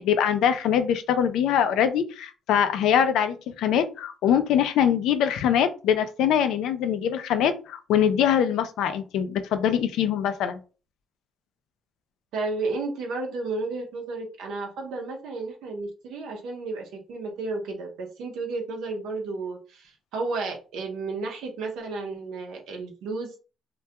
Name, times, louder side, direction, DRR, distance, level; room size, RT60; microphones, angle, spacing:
voice 1, 0.0-10.6, left 9 dB, 85° left, 10 dB, 0.3 m, -23 dB
voice 2, 12.3-23.3, right 3 dB, 90° right, 2 dB, 0.6 m, -32 dB
2.2 x 2.1 x 2.7 m, 0.35 s
cardioid pair, 90°, 0 cm